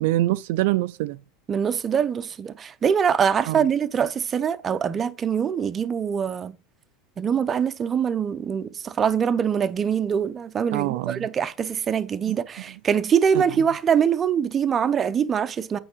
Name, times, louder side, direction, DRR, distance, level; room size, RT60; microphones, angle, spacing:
voice 1, 0.0-1.2 3.5-3.7 10.7-11.3 12.3-12.4 13.3-13.4, right 17 dB, 70° right, 0.3 m, -24 dB
voice 2, 1.5-6.6 7.2-15.8, right 7 dB, 20° right, 0.6 m, -23 dB
8.7 x 4.6 x 4.9 m
supercardioid pair, 155°, 0 cm